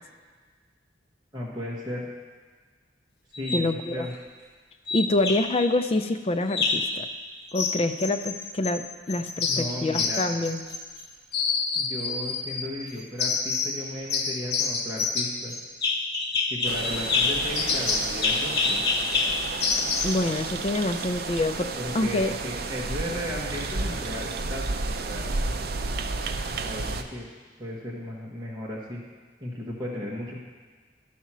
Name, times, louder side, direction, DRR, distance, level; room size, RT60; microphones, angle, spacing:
voice 1, 1.3-2.1 3.4-4.1 9.5-10.3 11.7-15.5 16.5-18.8 21.8-25.3 26.5-27.3 27.6-29.0 29.4-30.4, left 1 dB, 25° right, -5 dB, 1.2 m, -35 dB
sound 1, 3.3-3.7 4.9-5.7 6.5-6.9 7.5-8.8 9.1-11.0 11.3-12.7 13.2-13.8 14.1-20.2, left 4 dB, 65° left, 0.9 m, -27 dB
voice 2, 3.5-4.1 4.9-7.1 7.5-10.6 20.0-22.3, left 2 dB, 35° left, 8 dB, 0.4 m, -26 dB
sound 2, 16.6-27.0, right 3 dB, 60° right, 0.5 m, -32 dB
12.0 x 4.3 x 6.0 m, 1.5 s
head